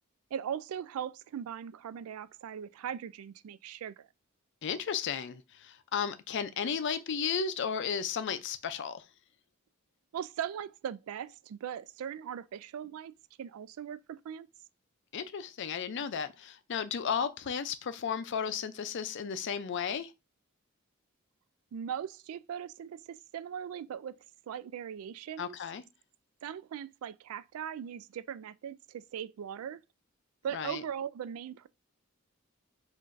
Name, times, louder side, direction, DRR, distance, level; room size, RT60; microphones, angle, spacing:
voice 1, 0.3-4.1 10.1-13.1 13.4-14.5 21.7-24.2 24.5-25.6 26.4-29.8 30.4-31.7, right 8 dB, 85° right, 0.3 m, -39 dB
voice 2, 4.6-9.1 15.1-20.1 25.4-25.8 30.5-30.8, left 7 dB, 60° left, 0.4 m, -34 dB
5.6 x 2.6 x 2.5 m
head